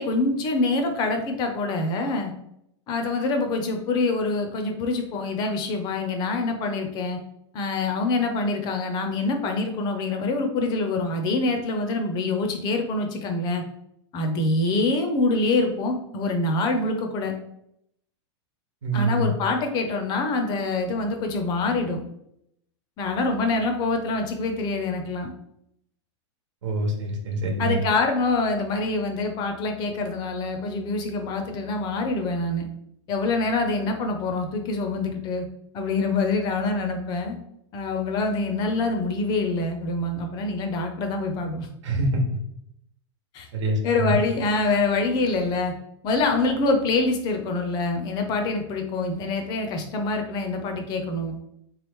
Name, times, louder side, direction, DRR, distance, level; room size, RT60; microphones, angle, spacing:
voice 1, 0.0-2.3 2.9-7.2 7.5-13.6 14.1-17.3 18.9-22.0 23.0-25.3 27.6-32.7 33.1-35.5 35.7-37.4 37.7-41.7 43.3-43.5 43.8-45.7 46.0-51.3, left 3 dB, 30° left, 5 dB, 0.5 m, -25 dB
voice 2, 18.8-19.3 26.6-27.8 41.8-42.2 43.5-44.2, right 1 dB, 80° right, 1 dB, 1.1 m, -25 dB
3.4 x 3.1 x 3.4 m, 0.75 s
supercardioid pair, 155°, 15 cm